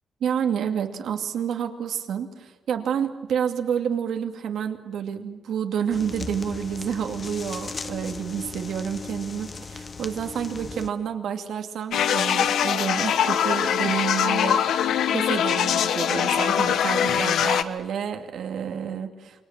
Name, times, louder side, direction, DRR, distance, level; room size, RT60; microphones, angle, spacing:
voice 1, 0.2-14.9 15.1-19.4, right 8 dB, 75° right, 5 dB, 2.5 m, -29 dB
sound 1, 5.9-10.9, left 4 dB, 30° left, 1.3 m, -37 dB
sound 2, 11.9-17.6, left 9 dB, 90° left, 1.3 m, -22 dB
28.5 x 25.0 x 7.5 m, 1.2 s
wide cardioid pair, 175°, 0 cm